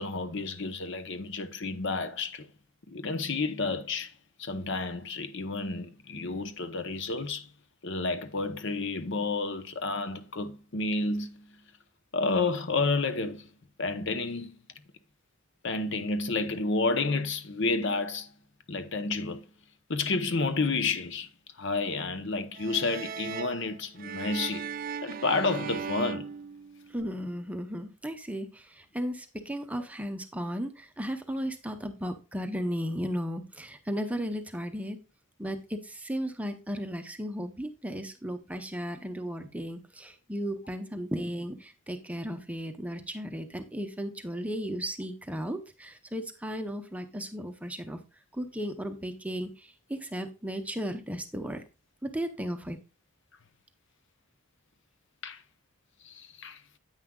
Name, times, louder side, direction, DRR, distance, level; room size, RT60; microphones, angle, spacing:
voice 1, 0.0-2.5 2.9-4.1 4.4-7.5 7.8-11.4 12.1-13.5 13.8-14.5 15.6-18.3 18.7-19.4 19.9-21.3 21.6-24.7 25.0-26.3 55.2-55.4 56.0-56.6, left 3 dB, 55° left, 0.8 m, -30 dB
sound 1, 22.5-27.2, right 6 dB, 40° right, 0.3 m, -38 dB
voice 2, 26.9-35.0 35.4-48.0 48.3-51.6 52.0-52.8, equal, 5° right, 0.7 m, -35 dB
9.7 x 8.9 x 2.3 m
head